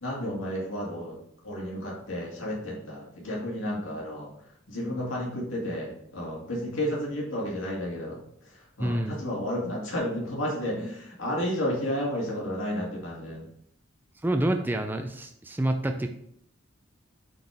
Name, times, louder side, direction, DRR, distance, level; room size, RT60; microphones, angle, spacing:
voice 1, 0.0-1.2 1.4-4.3 4.7-13.5, equal, 75° left, -4 dB, 2.3 m, -32 dB
voice 2, 8.8-9.2 14.2-16.1, right 1 dB, 10° right, 6 dB, 0.4 m, -27 dB
7.7 x 4.4 x 3.5 m, 0.69 s
head